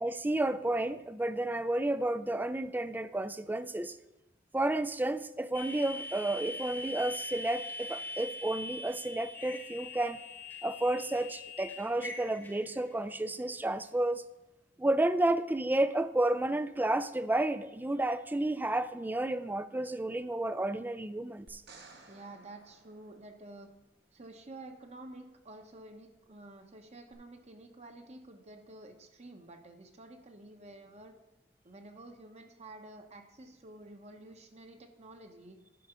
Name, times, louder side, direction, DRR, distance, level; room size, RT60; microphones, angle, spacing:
voice 1, 0.0-4.0 4.5-10.2 10.6-14.2 14.8-21.6, right 1 dB, 10° right, 0.3 m, -31 dB
sound 1, 5.5-13.1, left 2 dB, 10° left, 1.0 m, -43 dB
sound 2, 21.5-23.8 27.1-27.2, right 3 dB, 60° right, 1.4 m, -56 dB
voice 2, 22.1-23.7 24.1-31.1 31.6-35.6, right 2 dB, 35° right, 1.0 m, -50 dB
10.5 x 4.9 x 5.6 m
head